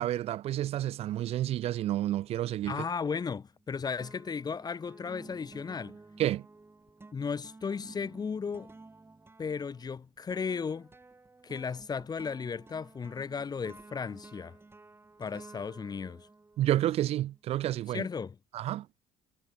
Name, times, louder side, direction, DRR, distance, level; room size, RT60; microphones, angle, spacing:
voice 1, 0.0-2.8 6.2-6.5 16.6-18.1 18.5-19.0, right 13 dB, 60° right, 0.4 m, -30 dB
voice 2, 2.7-6.0 7.1-8.7 9.4-10.9 11.4-14.6 15.2-16.3 17.9-18.4, left 5 dB, 35° left, 1.6 m, -35 dB
sound 1, 3.2-3.7 4.0-17.4, right 3 dB, 20° right, 4.3 m, -53 dB
supercardioid pair, 75°, 12 cm